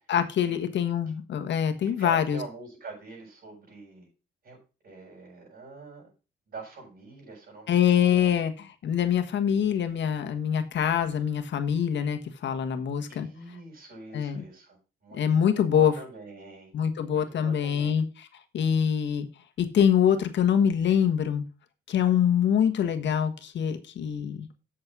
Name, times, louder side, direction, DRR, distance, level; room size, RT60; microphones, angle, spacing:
voice 1, 0.1-2.4 7.7-13.3 14.1-14.4 15.1-15.9 16.7-18.0 18.5-19.3 19.6-21.4 21.9-24.5, left 8 dB, 65° left, 7 dB, 1.6 m, -24 dB
voice 2, 1.8-4.1 4.4-4.6 4.8-6.1 6.5-8.4 13.1-16.7 17.0-18.0, right 3 dB, 50° right, -5 dB, 6.5 m, -44 dB
8.1 x 6.5 x 6.1 m, 0.33 s
cardioid pair, 90°, 20 cm